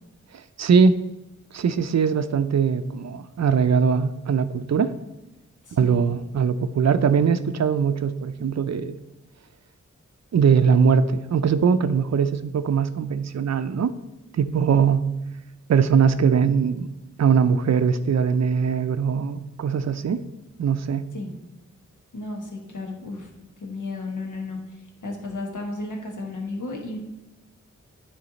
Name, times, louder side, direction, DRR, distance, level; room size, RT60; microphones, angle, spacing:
voice 1, 0.6-1.0 1.5-4.9 5.7-9.0 10.3-13.9 14.3-15.1 15.7-16.9 17.2-20.2 20.6-21.1, right 6 dB, 60° right, 12 dB, 0.5 m, -21 dB
voice 2, 5.6-6.0 21.1-21.3 22.1-23.3 23.6-24.6 25.0-27.0, left 2 dB, 80° left, 0 dB, 1.3 m, -33 dB
9.6 x 3.3 x 4.0 m, 1.0 s
cardioid pair, 45°, 30 cm